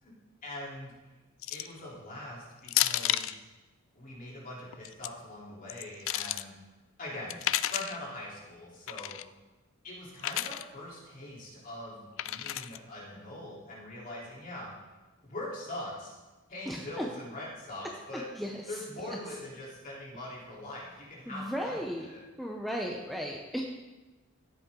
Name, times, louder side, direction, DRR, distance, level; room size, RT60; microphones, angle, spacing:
voice 1, 0.4-0.9 1.5-3.4 3.9-6.5 7.0-7.4 7.7-9.1 9.8-14.7 15.2-16.2 16.5-18.3 18.7-22.2, left 1 dB, 40° left, -5 dB, 3.6 m, -42 dB
sound 1, 1.4-1.8 2.7-3.4 4.7-5.1 5.7-6.4 7.3-8.0 8.9-9.2 10.2-10.6 12.2-12.8, left 14 dB, 65° left, 0.4 m, -31 dB
voice 2, 16.7-17.1 18.1-18.6 21.3-22.1 22.4-23.6, equal, ahead, 0 dB, 0.7 m, -35 dB
15.0 x 8.3 x 3.8 m, 1.2 s
head